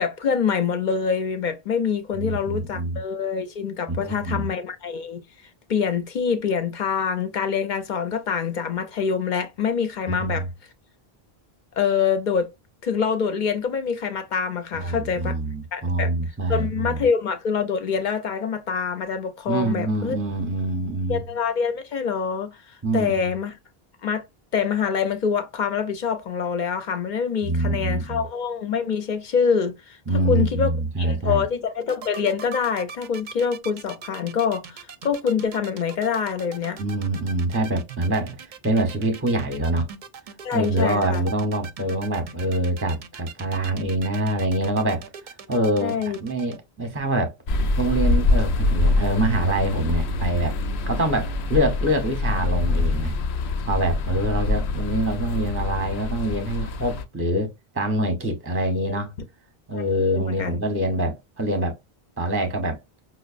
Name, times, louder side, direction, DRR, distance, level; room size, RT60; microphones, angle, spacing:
voice 1, 0.0-5.3 5.7-10.5 11.8-12.5 12.8-15.4 15.7-16.1 16.5-20.2 21.1-23.5 24.0-24.2 24.5-30.0 30.3-36.8 40.4-41.2 45.8-46.2 58.9-59.0 59.7-59.8 60.1-60.6, left 6 dB, 55° left, 0.6 m, -25 dB
voice 2, 2.2-3.0 3.9-4.5 10.1-10.5 14.7-17.0 19.5-21.2 22.8-23.3 27.4-28.2 30.1-31.4 36.8-39.9 40.5-45.1 45.5-47.4 47.8-50.6 50.8-53.1 53.7-59.1 59.7-61.8 62.2-62.8, right 1 dB, 15° right, 0.6 m, -25 dB
sound 1, 31.8-46.6, right 6 dB, 60° right, 0.6 m, -40 dB
sound 2, 47.5-57.0, left 2 dB, 90° left, 0.8 m, -24 dB
5.3 x 2.0 x 2.4 m
omnidirectional pair, 1.0 m